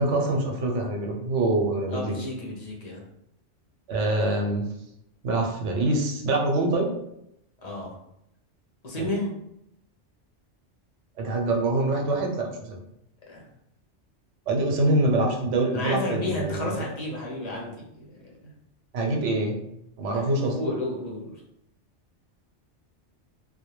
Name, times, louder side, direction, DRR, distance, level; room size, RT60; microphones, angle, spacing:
voice 1, 0.0-2.2 3.9-4.7 5.2-6.9 8.9-9.1 11.2-12.8 14.5-16.9 18.9-19.6 20.0-20.6, right 2 dB, 85° right, 1 dB, 0.9 m, -25 dB
voice 2, 1.9-3.0 7.6-7.9 8.8-9.3 13.3-13.4 15.7-17.9 18.4-18.5 20.1-21.3, left 1 dB, 50° left, -3 dB, 0.5 m, -32 dB
2.2 x 2.1 x 3.0 m, 0.79 s
omnidirectional pair, 1.2 m